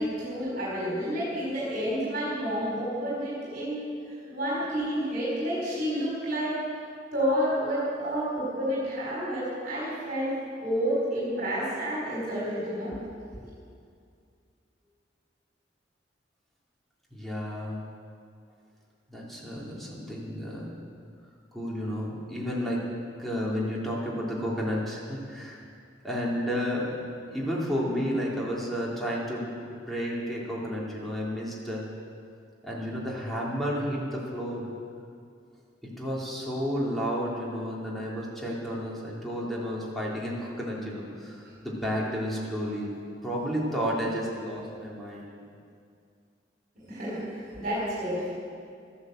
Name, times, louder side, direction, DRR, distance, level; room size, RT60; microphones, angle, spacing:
voice 1, 0.0-6.6 7.1-13.0 13.4-13.5 41.4-41.5 46.7-48.3, equal, 50° right, -7 dB, 4.6 m, -30 dB
voice 2, 17.1-17.8 19.1-20.7 21.5-22.8 23.2-25.6 26.0-27.0 27.3-31.8 32.6-34.7 35.8-42.9 43.2-45.5, equal, ahead, -6 dB, 3.1 m, -31 dB
13.5 x 11.0 x 7.8 m, 2.3 s
head